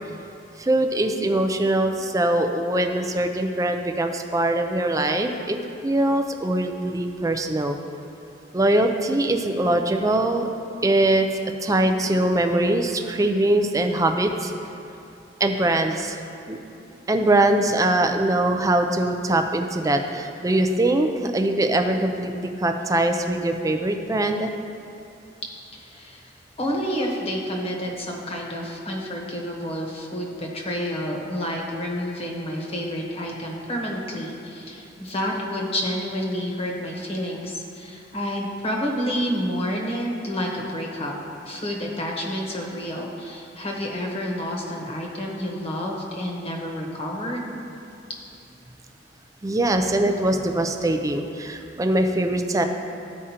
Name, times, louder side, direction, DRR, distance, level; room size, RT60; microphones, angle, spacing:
voice 1, 0.6-5.6 5.8-7.8 8.5-10.5 10.8-11.3 11.6-14.5 15.4-16.2 16.5-16.6 17.1-22.3 22.6-24.5 49.4-52.6, right 1 dB, 20° right, 5 dB, 0.4 m, -22 dB
voice 2, 25.7-26.3 26.6-41.1 41.5-47.5, equal, 30° left, -1 dB, 1.1 m, -29 dB
13.5 x 4.9 x 2.9 m, 2.8 s
head